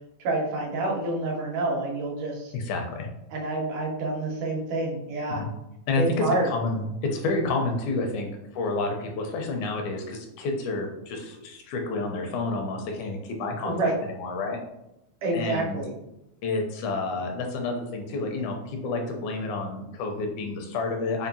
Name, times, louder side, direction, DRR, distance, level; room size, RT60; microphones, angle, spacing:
voice 1, 0.2-2.5 3.3-5.4 6.0-6.5 13.6-13.9 15.2-15.9, right 2 dB, 85° right, -2 dB, 2.3 m, -28 dB
voice 2, 2.5-3.1 5.3-5.5 5.9-8.3 8.5-14.6 15.3-15.8 16.4-21.3, left 3 dB, 80° left, 3 dB, 2.0 m, -29 dB
5.4 x 2.4 x 2.6 m, 0.89 s
omnidirectional pair, 3.5 m